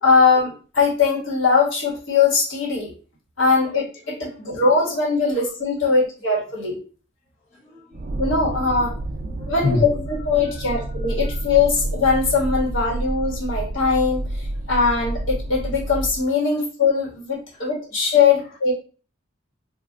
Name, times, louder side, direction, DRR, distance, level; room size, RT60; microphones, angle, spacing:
voice 1, 0.0-2.9 3.4-6.8 8.1-8.9 9.5-18.7, left 4 dB, 85° left, -3 dB, 1.4 m, -21 dB
voice 2, 7.5-8.3 9.2-10.1 10.4-10.7 11.2-11.4, left 2 dB, 35° left, -6 dB, 1.0 m, -29 dB
sound 1, 7.9-16.2, right 1 dB, 45° right, 0.4 m, -29 dB
2.5 x 2.3 x 3.7 m, 0.38 s
head